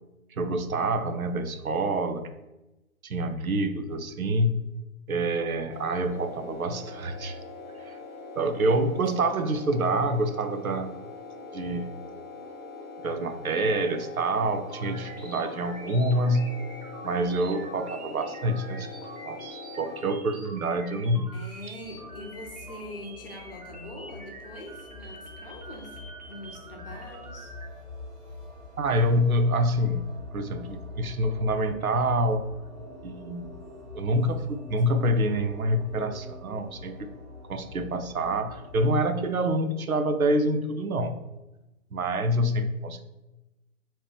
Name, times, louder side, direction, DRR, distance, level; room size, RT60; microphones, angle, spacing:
voice 1, 0.4-2.3 3.0-4.6 5.1-7.4 7.8-8.0 8.4-10.9 11.5-11.9 13.0-16.5 17.0-21.3 28.8-30.1 30.3-32.5 33.0-33.5 33.9-37.1 37.5-41.2 41.9-43.0, right 1 dB, 75° right, 7 dB, 0.6 m, -27 dB
sound 1, 5.7-20.0, left 3 dB, 75° left, 0.8 m, -42 dB
voice 2, 8.6-9.0 21.3-26.0 26.3-27.5, left 1 dB, 40° left, 1 dB, 0.7 m, -43 dB
sound 2, 14.7-27.7, right 2 dB, 30° right, 0.6 m, -46 dB
sound 3, 21.8-38.9, left 2 dB, 5° right, 0.9 m, -45 dB
2.9 x 2.8 x 3.4 m, 1.0 s
figure-of-eight pair, 140°, 43 cm